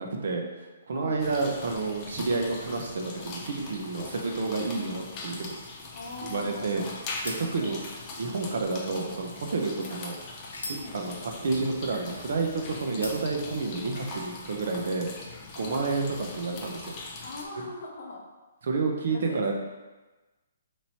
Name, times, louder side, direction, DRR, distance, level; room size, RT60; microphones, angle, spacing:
voice 1, 0.0-5.6 6.2-6.9 7.2-7.8 8.2-10.1 10.7-17.0 18.6-19.5, right 3 dB, 55° right, 2 dB, 0.5 m, -30 dB
sound 1, 1.2-17.5, left 3 dB, 20° left, 0.4 m, -41 dB
sound 2, 5.7-14.0, left 2 dB, 90° left, 0.9 m, -46 dB
voice 2, 5.9-6.9 7.4-7.8 9.7-9.9 10.8-10.9 15.6-15.9 17.2-18.2 18.7-18.8 19.1-19.5, left 3 dB, 50° left, -1 dB, 0.7 m, -41 dB
3.0 x 2.7 x 4.2 m, 1.2 s
hypercardioid pair, 175°, 0 cm